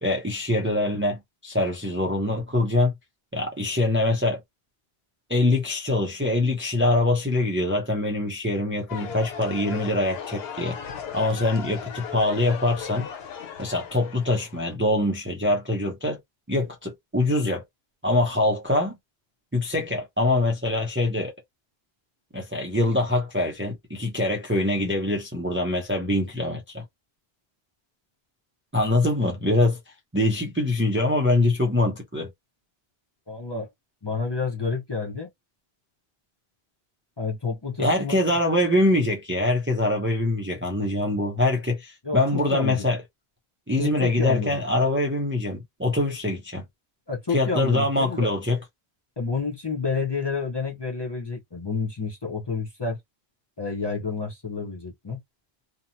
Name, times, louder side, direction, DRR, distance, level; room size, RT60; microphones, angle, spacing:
voice 1, 0.0-2.9 3.3-4.4 5.3-10.8 11.1-13.1 13.6-16.2 16.5-17.6 18.0-19.0 19.5-21.3 22.3-26.8 28.7-29.8 30.1-32.3 37.8-43.0 43.7-46.6 47.3-48.6, left 2 dB, 15° right, 0.5 m, -24 dB
sound 1, 8.9-14.7, left 7 dB, 75° left, 0.9 m, -37 dB
voice 2, 33.3-33.7 34.0-35.3 37.2-38.4 42.0-42.9 43.8-44.6 47.1-48.3 49.2-53.0 53.6-55.2, left 4 dB, 30° left, 0.7 m, -29 dB
2.8 x 2.2 x 2.6 m
omnidirectional pair, 1.0 m